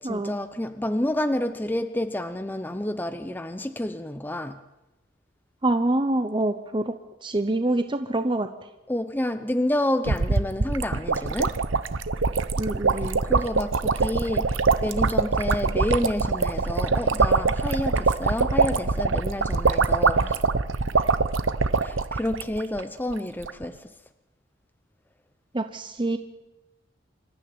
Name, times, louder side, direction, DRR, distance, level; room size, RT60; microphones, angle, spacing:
voice 1, 0.0-4.6 8.9-11.6 13.2-20.5 21.8-23.8, left 1 dB, 10° left, 9 dB, 0.8 m, -29 dB
voice 2, 5.6-6.9 7.2-8.5 12.6-13.2 25.5-26.2, right 2 dB, 25° right, 9 dB, 0.9 m, -25 dB
sound 1, 10.1-22.8 23.1-23.2 23.4-23.6, right 4 dB, 80° right, 0.9 m, -24 dB
26.0 x 13.5 x 8.9 m, 1.0 s
head